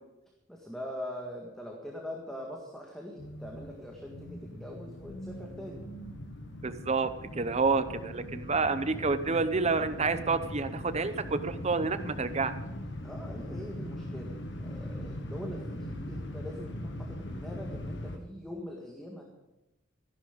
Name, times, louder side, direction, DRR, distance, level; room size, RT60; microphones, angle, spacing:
voice 1, 0.5-5.8 12.9-14.3 14.6-19.2, left 1 dB, 5° left, -1 dB, 1.7 m, -42 dB
sound 1, 3.2-18.2, left 1 dB, 65° left, 1.6 m, -40 dB
voice 2, 6.6-7.1 7.4-12.5, right 4 dB, 35° right, 11 dB, 0.8 m, -29 dB
14.5 x 11.5 x 5.2 m, 0.98 s
head